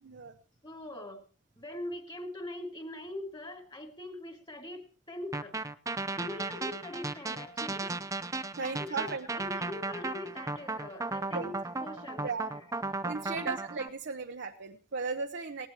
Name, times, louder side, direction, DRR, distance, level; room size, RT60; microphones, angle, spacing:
voice 1, 0.0-0.3 7.8-7.9 8.6-9.3 11.3-11.5 12.2-12.5 13.0-15.7, right 4 dB, 65° right, 4 dB, 0.9 m, -36 dB
voice 2, 0.6-1.2 1.6-5.6 6.2-8.2 8.6-11.5 11.8-12.6 13.3-13.6, left 1 dB, 25° left, 4 dB, 2.8 m, -42 dB
sound 1, 5.3-13.9, right 3 dB, 15° right, 0.6 m, -35 dB
20.0 x 17.0 x 3.0 m, 0.37 s
head